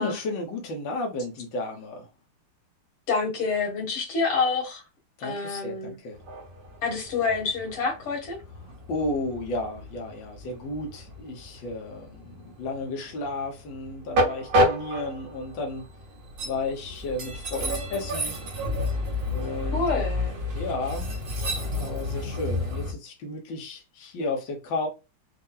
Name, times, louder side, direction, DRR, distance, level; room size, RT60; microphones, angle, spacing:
voice 1, 0.0-2.1 5.2-6.2 8.9-15.8 16.4-18.4 19.3-19.8 20.5-21.1 21.7-24.9, left 2 dB, 65° left, 1.8 m, -33 dB
voice 2, 3.1-4.8 5.2-5.9 6.8-8.4 19.7-20.3, left 4 dB, 85° left, 2.7 m, -27 dB
Train, 6.1-22.9, left 1 dB, 70° right, 2.4 m, -30 dB
5.8 x 2.4 x 3.8 m
omnidirectional pair, 2.4 m